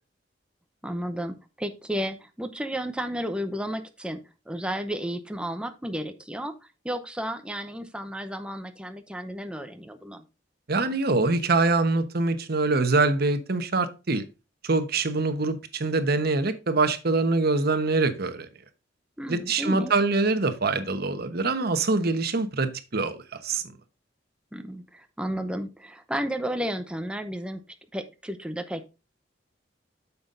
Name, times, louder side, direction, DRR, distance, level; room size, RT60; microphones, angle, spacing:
voice 1, 0.8-6.5 6.8-10.2 19.2-19.9 24.5-27.6 27.9-28.9, equal, 5° right, 0.7 m, -32 dB
voice 2, 10.7-14.2 14.6-18.5 19.3-23.6, right 3 dB, 55° right, 1.0 m, -24 dB
9.4 x 7.0 x 2.5 m
head